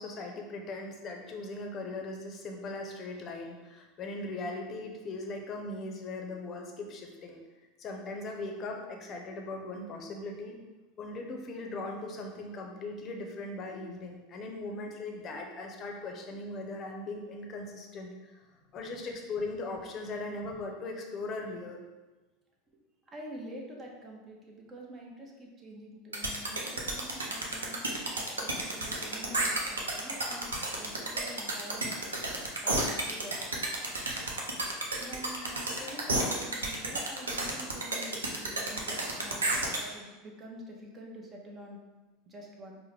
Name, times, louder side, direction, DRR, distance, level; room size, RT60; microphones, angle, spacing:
voice 1, 0.0-7.4 7.8-10.5 11.0-18.1 18.7-21.8 35.4-35.8, left 2 dB, 40° left, 2 dB, 0.6 m, -39 dB
voice 2, 23.1-32.0 32.6-33.7 35.0-41.8 42.3-42.8, equal, 30° right, -1 dB, 0.8 m, -46 dB
sound 1, 26.1-39.8, right 2 dB, 90° right, 0.5 m, -31 dB
4.5 x 2.1 x 3.2 m, 1.2 s
hypercardioid pair, 85°, 0 cm